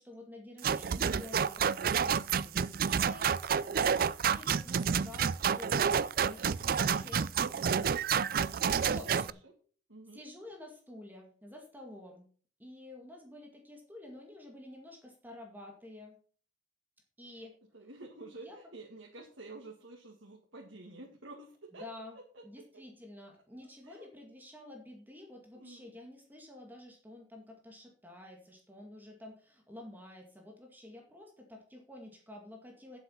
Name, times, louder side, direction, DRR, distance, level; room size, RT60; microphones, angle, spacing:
voice 1, 0.0-5.9 6.2-8.4 8.9-9.4 10.1-12.3 12.6-16.2 17.2-17.5 18.4-18.6 21.8-22.2 22.4-33.0, left 1 dB, 10° right, 1 dB, 2.1 m, -50 dB
sound 1, 0.6-9.3, right 7 dB, 50° right, 0.4 m, -29 dB
voice 2, 8.8-9.5 9.9-10.2 17.3-17.4 17.7-21.9 22.1-22.4 22.7-22.8 23.8-24.1 25.6-25.9, right 2 dB, 90° right, 0 dB, 2.0 m, -50 dB
9.5 x 7.8 x 5.7 m, 0.43 s
head